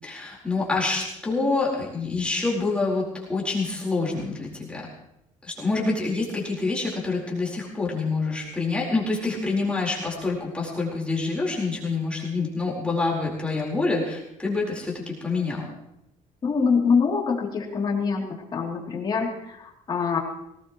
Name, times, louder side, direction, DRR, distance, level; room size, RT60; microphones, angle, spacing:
voice 1, 0.0-4.8 5.4-15.7, left 3 dB, 10° left, -4 dB, 4.3 m, -27 dB
voice 2, 16.4-18.3 18.5-20.2, left 5 dB, 30° left, -1 dB, 3.1 m, -24 dB
19.5 x 18.5 x 3.1 m, 0.84 s
cardioid pair, 140°, 14 cm